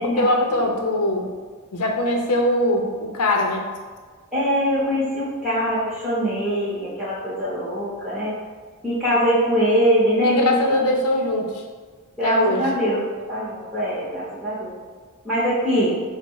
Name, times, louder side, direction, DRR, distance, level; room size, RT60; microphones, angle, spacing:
voice 1, 0.0-1.3 1.7-3.7 10.2-11.6 12.2-12.7, left 1 dB, 90° left, 2 dB, 0.6 m, -22 dB
voice 2, 4.3-8.3 8.8-10.6 12.2-14.7 15.2-15.9, equal, 5° right, -11 dB, 0.8 m, -22 dB
4.1 x 2.1 x 4.5 m, 1.5 s
head